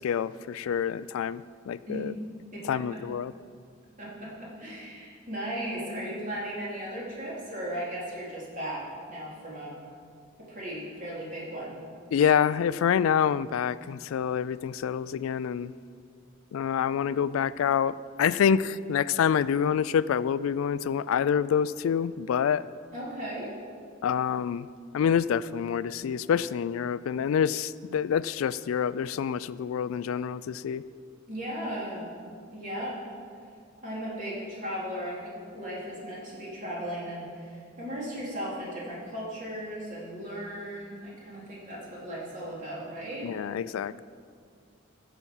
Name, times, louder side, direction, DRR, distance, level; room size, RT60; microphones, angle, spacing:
voice 1, 0.0-2.1 2.7-3.3 12.1-15.7 16.5-22.6 24.0-24.7 24.9-30.8 43.2-44.0, left 8 dB, 85° left, 17 dB, 0.3 m, -27 dB
voice 2, 2.5-3.0 4.0-9.8 10.4-11.8 22.9-23.5 31.3-32.1 32.5-33.0 33.8-43.3, equal, 40° right, -6 dB, 3.6 m, -36 dB
15.5 x 7.0 x 5.5 m, 2.2 s
head